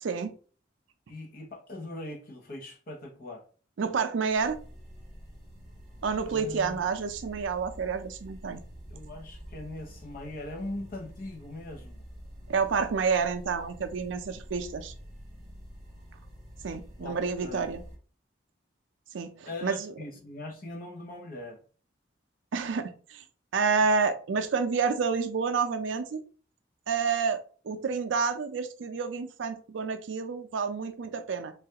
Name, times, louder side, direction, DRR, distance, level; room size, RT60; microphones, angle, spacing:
voice 1, 0.0-0.3 3.8-4.6 6.0-8.6 12.5-14.9 16.6-17.8 19.1-19.9 22.5-23.2 23.5-26.2 26.9-27.4 27.6-31.5, right 5 dB, 80° right, 0.4 m, -29 dB
voice 2, 1.1-3.4 6.3-6.8 8.9-12.0 17.0-17.6 19.4-21.6, left 2 dB, 50° left, 0.7 m, -40 dB
sound 1, 4.2-18.0, equal, 5° right, 1.2 m, -47 dB
3.2 x 2.3 x 2.8 m
head